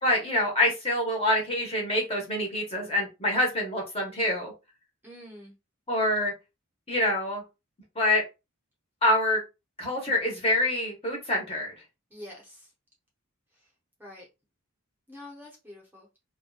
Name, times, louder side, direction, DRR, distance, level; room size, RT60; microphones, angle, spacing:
voice 1, 0.0-4.5 5.9-6.3 6.9-7.4 8.0-8.2 9.0-9.4 9.8-11.7, left 1 dB, 25° left, 0.8 m, -26 dB
voice 2, 5.0-5.5 12.1-12.7 13.5-13.7 14.0-14.3 15.1-16.1, left 1 dB, 10° right, 0.6 m, -46 dB
2.6 x 2.2 x 2.3 m
head